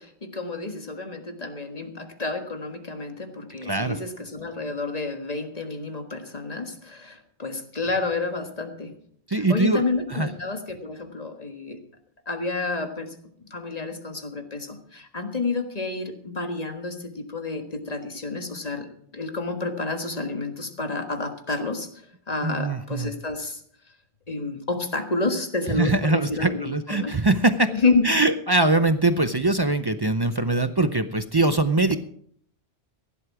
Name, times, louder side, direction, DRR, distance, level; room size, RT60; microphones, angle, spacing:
voice 1, 0.0-8.9 9.3-11.8 12.3-13.1 13.4-21.9 22.3-23.6 24.3-27.1 27.7-28.1, left 3 dB, 35° left, 6 dB, 1.7 m, -29 dB
voice 2, 3.6-4.0 9.3-9.8 10.1-10.3 22.4-23.1 25.7-27.7 28.0-32.0, right 2 dB, 30° right, 11 dB, 0.5 m, -22 dB
15.5 x 11.5 x 4.8 m, 0.64 s
omnidirectional pair, 1.1 m